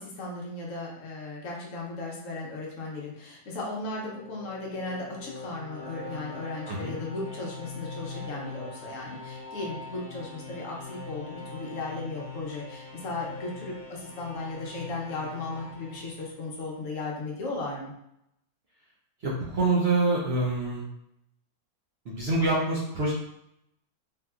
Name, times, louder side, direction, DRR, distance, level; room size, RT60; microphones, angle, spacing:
voice 1, 0.0-17.9, left 2 dB, 65° left, -2 dB, 1.0 m, -36 dB
sound 1, 3.8-16.8, left 3 dB, 85° left, 0.4 m, -43 dB
voice 2, 19.2-20.8 22.1-23.1, right 2 dB, 60° right, -5 dB, 0.7 m, -26 dB
3.5 x 2.6 x 2.3 m, 0.78 s
omnidirectional pair, 1.5 m